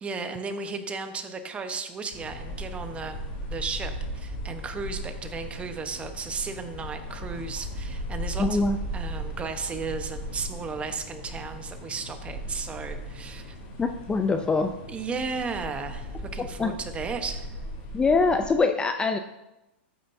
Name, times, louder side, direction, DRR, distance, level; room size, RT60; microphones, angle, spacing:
voice 1, 0.0-3.2 3.5-8.7 8.9-13.5 14.9-17.5, right 5 dB, 20° right, 7 dB, 1.1 m, -34 dB
sound 1, 2.1-18.6, equal, 50° left, 3.2 m, -37 dB
voice 2, 8.4-8.8 13.8-14.7 16.6-16.7 17.9-19.2, left 4 dB, 15° left, 7 dB, 0.5 m, -23 dB
13.5 x 8.9 x 2.7 m, 0.96 s
hypercardioid pair, 125°, 6 cm